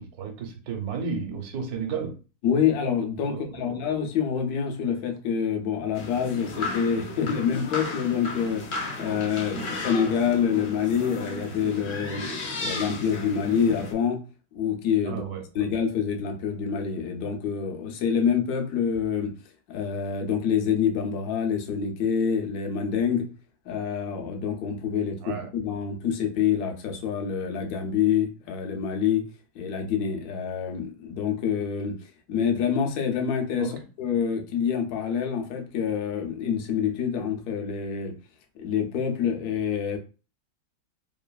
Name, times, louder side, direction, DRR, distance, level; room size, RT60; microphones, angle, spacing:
voice 1, 0.0-2.2 3.3-3.8 9.5-9.7 15.0-15.7 25.2-25.5 33.6-33.7, right 6 dB, 70° right, 4 dB, 1.1 m, -33 dB
voice 2, 2.4-12.3 12.6-14.2 14.5-15.2 15.5-19.3 19.7-23.3 23.7-29.3 29.5-33.7 34.0-38.1 38.6-40.0, left 7 dB, 70° left, 4 dB, 1.1 m, -26 dB
sound 1, 5.9-13.9, left 3 dB, 85° left, 0.5 m, -34 dB
3.1 x 2.4 x 2.2 m, 0.34 s
omnidirectional pair, 1.8 m